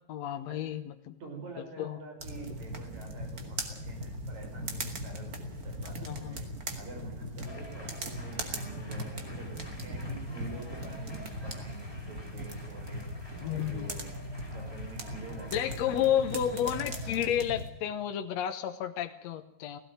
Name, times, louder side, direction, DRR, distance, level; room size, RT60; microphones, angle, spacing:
voice 1, 0.1-1.2 1.8-2.0 5.8-6.4 13.4-13.9 15.5-19.8, left 10 dB, 70° left, 6 dB, 2.2 m, -31 dB
voice 2, 1.2-13.1 13.4-14.0 14.5-16.1, right 2 dB, 75° right, 2 dB, 7.2 m, -47 dB
sound 1, 2.2-17.7, right 1 dB, 35° right, 2.4 m, -39 dB
sound 2, 7.5-17.2, left 1 dB, 10° left, 4.1 m, -51 dB
17.0 x 16.5 x 9.3 m, 0.79 s
omnidirectional pair, 3.3 m